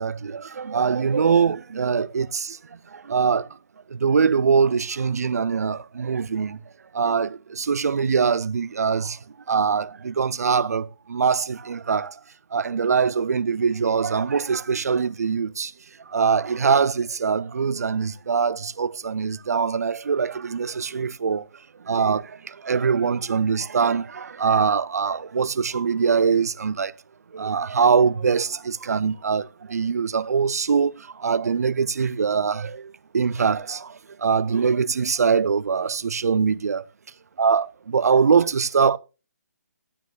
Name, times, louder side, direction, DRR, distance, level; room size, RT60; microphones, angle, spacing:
voice 1, 0.0-2.6 2.9-3.5 3.9-6.6 6.9-9.2 9.5-12.1 12.5-15.7 16.1-21.5 21.9-26.9 27.3-36.8 37.4-39.0, right 6 dB, 70° right, 0.6 m, -23 dB
15.0 x 9.3 x 2.4 m
hypercardioid pair, 150°, 9 cm